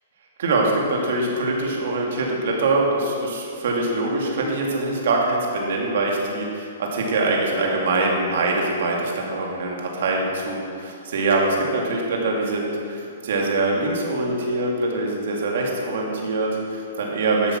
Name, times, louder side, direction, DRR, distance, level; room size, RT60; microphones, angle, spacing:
voice 1, 0.4-17.6, right 2 dB, 65° right, -1 dB, 2.5 m, -23 dB
12.5 x 8.5 x 6.0 m, 2.4 s
hypercardioid pair, 155°, 0 cm